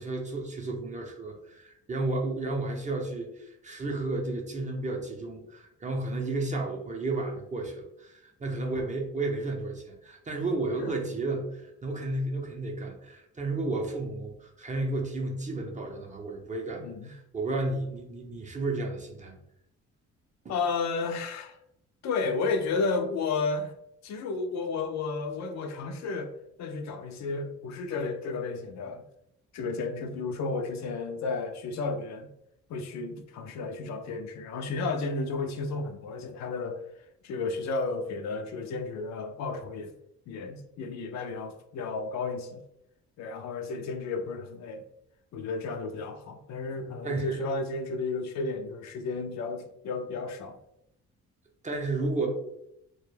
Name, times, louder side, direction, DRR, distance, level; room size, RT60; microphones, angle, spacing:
voice 1, 0.0-19.4 47.0-47.5 51.6-52.3, right 2 dB, 25° right, 1 dB, 0.5 m, -32 dB
voice 2, 16.8-17.1 20.5-21.6 22.0-23.7 24.0-26.3 26.6-29.0 29.5-32.3 32.7-36.8 37.2-39.9 40.3-42.6 43.2-44.8 45.3-50.6, left 4 dB, 65° left, 6 dB, 0.4 m, -32 dB
2.2 x 2.0 x 3.1 m, 0.80 s
cardioid pair, 90°, 30 cm